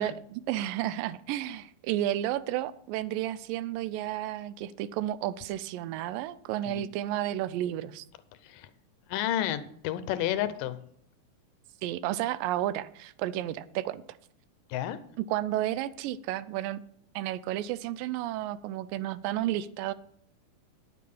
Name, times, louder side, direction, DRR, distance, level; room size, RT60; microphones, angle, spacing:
voice 1, 0.0-8.1 11.8-14.0 15.3-16.8 17.2-19.9, right 13 dB, 85° right, 16 dB, 2.3 m, -32 dB
voice 2, 9.1-10.8 14.7-15.0, left 11 dB, 80° left, 12 dB, 2.3 m, -31 dB
10.0 x 8.6 x 5.5 m, 0.66 s
omnidirectional pair, 3.9 m